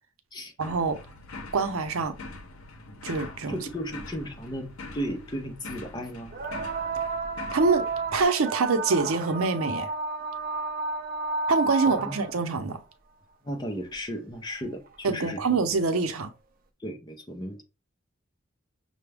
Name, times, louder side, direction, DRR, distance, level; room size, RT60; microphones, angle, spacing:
sound 1, 0.6-8.2, left 2 dB, 85° left, 0.7 m, -43 dB
voice 1, 0.6-1.0 1.5-2.1 3.0-3.6 7.5-7.9 8.1-9.9 11.5-12.8 15.0-16.3, right 4 dB, 85° right, 0.7 m, -25 dB
voice 2, 3.5-6.4 12.0-12.1 13.4-15.6 16.8-17.6, equal, 20° left, 0.6 m, -35 dB
sound 2, 4.2-4.3 6.3-12.5 13.9-14.0 14.9-15.0, right 3 dB, 40° right, 0.5 m, -31 dB
5.8 x 2.2 x 3.4 m
head